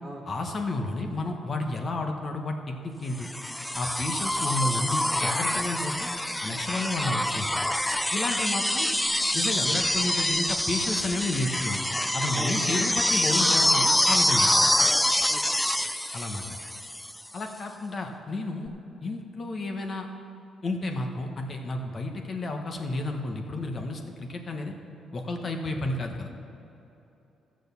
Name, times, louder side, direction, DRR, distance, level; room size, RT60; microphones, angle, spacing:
voice 1, 0.2-3.3 3.7-6.1 6.4-7.7 8.1-8.9 9.3-11.8 12.1-14.5 16.1-16.4 17.3-18.7 19.0-20.1 20.6-24.7 25.1-26.3, left 2 dB, 40° left, 3 dB, 1.3 m, -31 dB
sound 1, 3.2-17.2 18.7-18.8, left 1 dB, 5° left, 0.4 m, -26 dB
voice 2, 12.3-12.8 15.3-15.4, right 1 dB, 10° right, -3 dB, 1.1 m, -38 dB
13.0 x 6.4 x 7.1 m, 3.0 s
cardioid pair, 90°, 0 cm